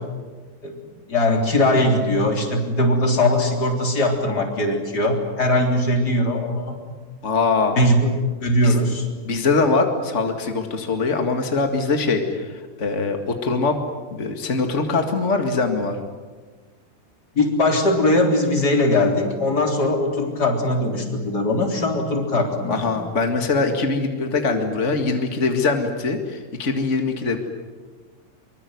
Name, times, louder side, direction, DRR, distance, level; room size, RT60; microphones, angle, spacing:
voice 1, 1.1-6.8 7.8-8.1 8.4-9.1 17.3-22.8, left 1 dB, 25° left, 2 dB, 3.8 m, -20 dB
voice 2, 7.2-7.8 8.6-8.8 9.2-13.8 14.1-16.0 22.7-27.4, left 3 dB, 55° left, 5 dB, 0.8 m, -22 dB
25.0 x 23.5 x 9.4 m, 1.4 s
omnidirectional pair, 4.9 m